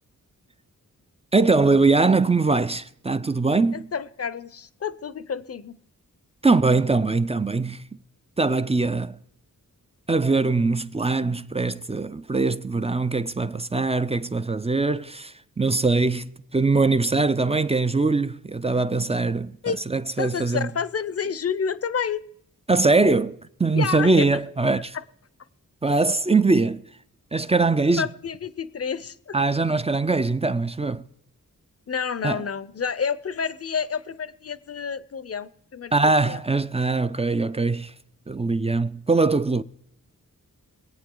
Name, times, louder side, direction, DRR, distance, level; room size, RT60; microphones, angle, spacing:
voice 1, 1.3-3.9 6.4-7.9 8.4-9.2 10.1-19.6 19.9-20.7 22.7-24.9 25.8-26.8 27.3-28.1 29.3-31.0 32.2-32.4 35.9-37.9 38.3-39.6, right 3 dB, 20° right, 0.4 m, -22 dB
voice 2, 3.7-5.8 19.6-19.8 20.2-22.2 23.7-24.3 24.9-25.0 28.0-29.4 31.9-36.4, left 6 dB, 45° left, 0.6 m, -29 dB
22.5 x 8.3 x 3.8 m
wide cardioid pair, 70°, 35 cm